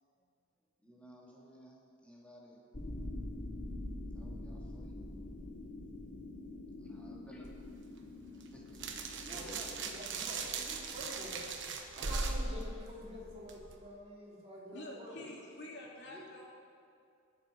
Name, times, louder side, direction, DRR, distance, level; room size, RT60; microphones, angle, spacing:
voice 1, 0.8-2.7 4.1-5.0 6.8-7.7 8.3-9.7 15.1-15.3 15.7-15.8 16.1-16.3, equal, 5° left, -4 dB, 2.7 m, -56 dB
sound 1, 2.7-10.0, left 1 dB, 40° left, 1.2 m, -45 dB
sound 2, 7.4-13.8, right 3 dB, 60° right, 1.2 m, -40 dB
voice 2, 9.2-15.3, equal, 30° right, -6 dB, 3.6 m, -48 dB
voice 3, 14.7-16.5, left 1 dB, 60° left, -2 dB, 2.7 m, -48 dB
21.5 x 7.7 x 5.3 m, 2.4 s
head